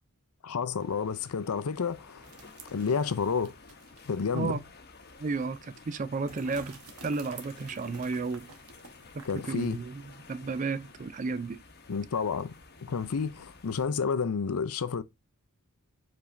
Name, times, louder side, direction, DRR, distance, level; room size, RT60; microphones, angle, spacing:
voice 1, 0.4-2.3 2.6-3.5 4.1-4.6 9.2-9.8 11.9-12.5 12.8-15.0, left 5 dB, 80° left, 0.6 m, -30 dB
sound 1, 0.8-13.8, left 3 dB, 45° left, 0.9 m, -52 dB
sound 2, 2.2-4.5 4.9-5.0 6.3-9.9, right 4 dB, 90° right, 1.1 m, -52 dB
voice 2, 5.2-8.5 9.1-10.0 10.3-11.6, right 4 dB, 35° right, 0.4 m, -33 dB
4.9 x 3.5 x 2.6 m
head